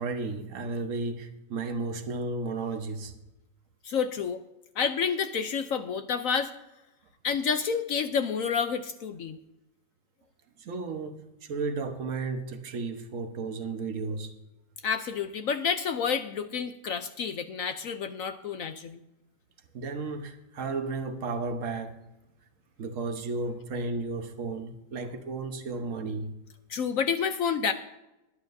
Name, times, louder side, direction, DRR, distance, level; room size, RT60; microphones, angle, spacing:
voice 1, 0.0-3.1 10.6-14.3 19.7-22.0 22.8-26.3, right 3 dB, 50° right, 1.4 m, -33 dB
voice 2, 3.8-4.4 4.8-6.5 7.2-9.4 14.8-19.0 26.7-27.7, left 6 dB, 65° left, 0.9 m, -29 dB
19.5 x 11.5 x 2.7 m
omnidirectional pair, 1.9 m